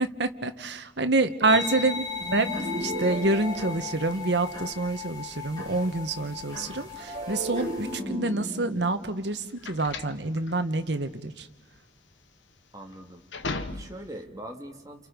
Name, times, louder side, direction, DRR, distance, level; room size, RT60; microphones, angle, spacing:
voice 1, 0.0-2.1 2.3-2.5 2.8-11.5, right 2 dB, 65° right, 8 dB, 1.4 m, -27 dB
sound 1, 1.4-8.0, left 5 dB, 20° left, 7.7 m, -37 dB
voice 2, 1.4-2.0 12.7-15.1, right 1 dB, 20° right, 2 dB, 2.6 m, -42 dB
sound 2, 2.2-4.6 7.0-10.3, right 1 dB, 45° right, 6.6 m, -36 dB
sound 3, 8.2-14.2, left 3 dB, 90° left, 1.4 m, -39 dB
29.0 x 28.5 x 5.3 m, 1.1 s
head